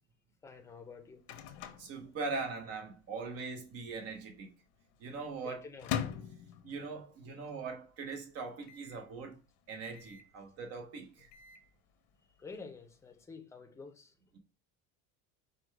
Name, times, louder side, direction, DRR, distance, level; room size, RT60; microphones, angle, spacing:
voice 1, 0.4-1.2 5.4-5.9 12.4-14.1, left 4 dB, 10° left, 0.6 m, -49 dB
Microwave oven, 0.6-2.9 3.1-3.2 3.4-4.0 4.5-7.2 7.6-7.7 7.9-8.0 8.6-9.1 9.9-10.4 11.0-11.7, left 9 dB, 85° left, 0.8 m, -42 dB
voice 2, 1.8-4.5 5.0-5.6 6.6-9.4 9.7-11.3, right 4 dB, 55° right, 1.0 m, -41 dB
5.1 x 2.3 x 4.5 m
cardioid pair, 150°, 30 cm